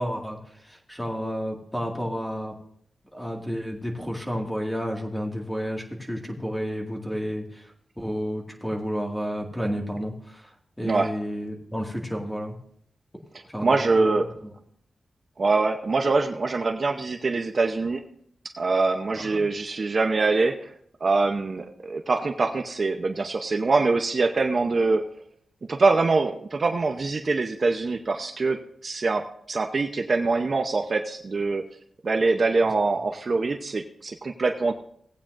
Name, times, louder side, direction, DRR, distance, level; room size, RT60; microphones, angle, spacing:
voice 1, 0.0-2.5 3.1-12.6 13.5-14.2 19.2-19.4, equal, 5° left, 0 dB, 2.1 m, -31 dB
voice 2, 13.6-14.3 15.4-18.0 18.6-20.7 21.0-25.0 25.7-31.6 32.0-34.7, right 3 dB, 45° right, 5 dB, 0.7 m, -24 dB
18.0 x 8.7 x 2.6 m, 0.65 s
wide cardioid pair, 120°, 0 cm